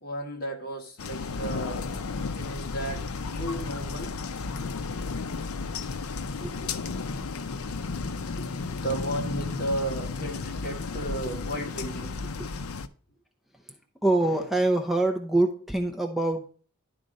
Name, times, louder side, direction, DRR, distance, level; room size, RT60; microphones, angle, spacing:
voice 1, 0.0-4.2 8.4-12.3, right 1 dB, 45° left, 2 dB, 1.5 m, -34 dB
sound 1, 1.0-12.9, left 4 dB, 70° left, 0.5 m, -33 dB
voice 2, 6.4-7.1 12.4-12.5 13.7-13.8 14.0-16.5, right 2 dB, ahead, 3 dB, 0.6 m, -25 dB
11.0 x 3.8 x 5.2 m, 0.42 s
head